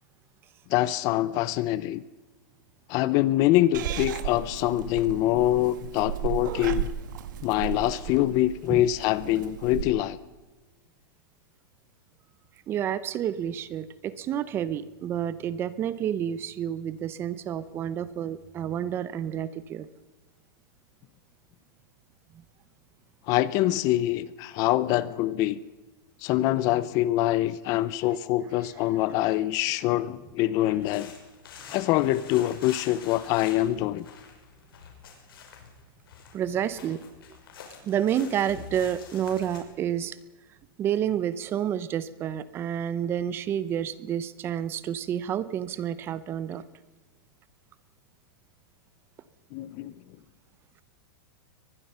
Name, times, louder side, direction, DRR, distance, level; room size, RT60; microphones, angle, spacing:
voice 1, 0.7-2.0 2.9-6.9 7.4-10.2 23.3-25.6 26.2-31.1 31.7-34.1 49.5-49.9, left 14 dB, 30° left, 18 dB, 0.6 m, -25 dB
Purr / Meow, 3.7-9.8, right 10 dB, 55° right, 1.7 m, -35 dB
voice 2, 12.7-19.9 36.3-37.0 37.8-40.2 40.8-46.6, right 9 dB, 20° right, 16 dB, 0.8 m, -29 dB
sound 1, 30.7-39.6, left 7 dB, 75° left, 6.0 m, -47 dB
23.5 x 20.0 x 5.6 m, 1.2 s
supercardioid pair, 165°, 12 cm